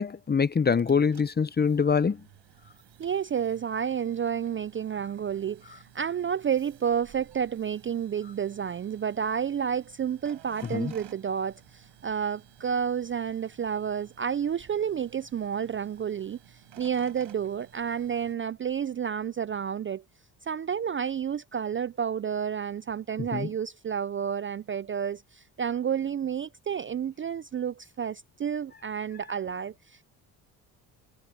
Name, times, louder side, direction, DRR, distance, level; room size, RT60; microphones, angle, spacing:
voice 1, 0.0-2.2 10.7-10.9 23.3-23.5, left 5 dB, 20° left, 0.7 m, -24 dB
sound 1, 0.6-18.3, right 12 dB, 70° right, 4.7 m, -55 dB
voice 2, 3.0-16.4 16.8-20.0 20.4-30.0, right 8 dB, 30° right, 0.4 m, -30 dB
supercardioid pair, 70°, 45 cm